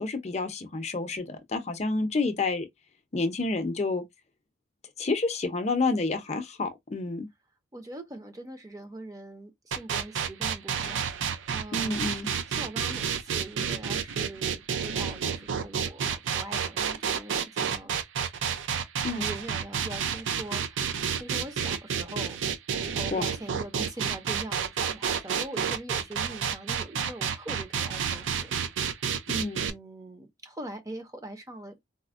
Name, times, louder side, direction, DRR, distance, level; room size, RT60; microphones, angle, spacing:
voice 1, 0.0-2.7 3.1-4.0 5.0-7.3 11.7-12.3 19.0-19.2 23.1-23.3 29.3-29.6, left 3 dB, 35° left, 0.5 m, -29 dB
voice 2, 7.7-11.1 11.5-17.9 19.1-22.4 22.9-28.5 28.8-29.1 29.6-31.7, right 1 dB, 20° right, 0.5 m, -42 dB
sound 1, 9.7-29.7, right 7 dB, 90° right, 0.4 m, -30 dB
4.1 x 2.0 x 2.4 m
head